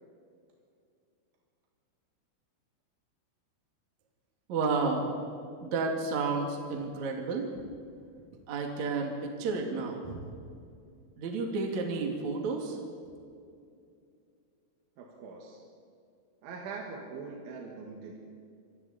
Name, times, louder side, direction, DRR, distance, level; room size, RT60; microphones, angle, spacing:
voice 1, 4.5-5.1 5.6-7.5 8.5-10.3 11.2-12.8, right 4 dB, 45° right, 1 dB, 3.0 m, -31 dB
voice 2, 15.0-15.6 16.4-18.2, right 4 dB, 70° right, -1 dB, 4.2 m, -42 dB
27.5 x 24.0 x 4.3 m, 2.4 s
omnidirectional pair, 5.7 m